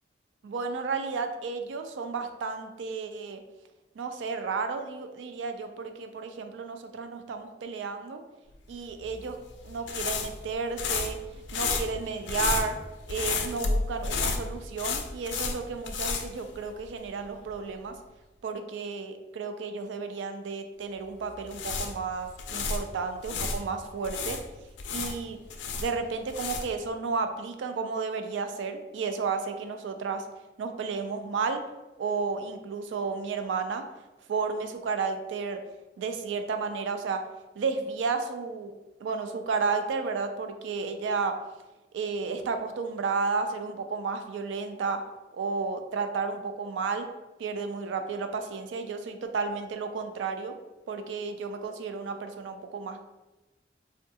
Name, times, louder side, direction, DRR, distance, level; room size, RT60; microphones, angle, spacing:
voice 1, 0.4-3.4 4.0-8.2 8.7-9.4 9.6-11.2 11.5-12.8 13.1-17.9 18.4-24.4 24.9-25.4 25.8-30.3 30.6-31.6 32.0-33.8 34.3-35.6 36.0-37.3 37.6-38.7 39.0-41.4 41.9-45.0 45.3-47.1 47.4-50.6 50.9-53.0, right 4 dB, 90° right, 7 dB, 0.3 m, -32 dB
sound 1, 9.0-17.1 17.4-17.5 21.3-23.6 24.0-26.9, left 4 dB, 85° left, 0.4 m, -32 dB
3.5 x 2.2 x 2.7 m, 1.1 s
head